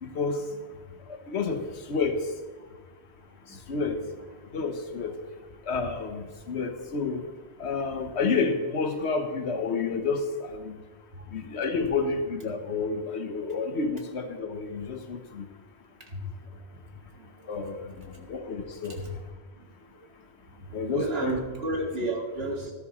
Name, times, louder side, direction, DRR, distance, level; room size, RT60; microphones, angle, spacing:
voice 1, 0.0-0.4 1.3-2.2 3.7-4.0 4.5-5.1 5.7-7.2 7.6-10.8 11.3-15.5 17.5-19.0 20.7-21.4 21.8-21.9, left 4 dB, 80° left, 7 dB, 1.2 m, -30 dB
voice 2, 20.9-22.7, right 2 dB, 60° right, 0 dB, 2.0 m, -31 dB
13.5 x 12.5 x 3.0 m, 1.4 s
omnidirectional pair, 1.1 m